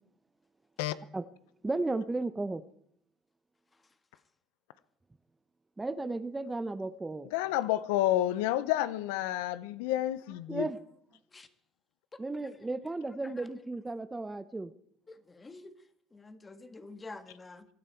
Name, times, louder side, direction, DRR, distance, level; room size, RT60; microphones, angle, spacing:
voice 1, 1.6-2.6 5.8-7.3 10.5-10.8 12.2-14.7, right 2 dB, 15° right, 14 dB, 0.8 m, -34 dB
voice 2, 7.3-10.7, left 14 dB, 85° left, 16 dB, 0.6 m, -29 dB
voice 3, 12.1-12.5 13.2-13.5 15.1-15.7 16.1-17.7, left 3 dB, 20° left, 10 dB, 1.6 m, -48 dB
23.5 x 9.6 x 4.6 m, 0.68 s
supercardioid pair, 90°, 0 cm